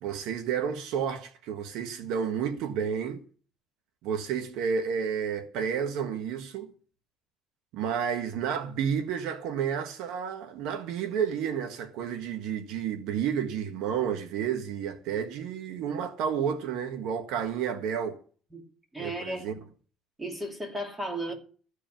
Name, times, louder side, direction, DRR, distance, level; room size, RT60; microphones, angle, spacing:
voice 1, 0.0-3.2 4.0-6.7 7.7-18.2 19.0-19.6, right 7 dB, 65° right, 1.5 m, -31 dB
voice 2, 18.9-19.6 20.2-21.3, right 1 dB, 10° right, 2.5 m, -34 dB
14.5 x 5.0 x 9.1 m
cardioid pair, 175°, 0 cm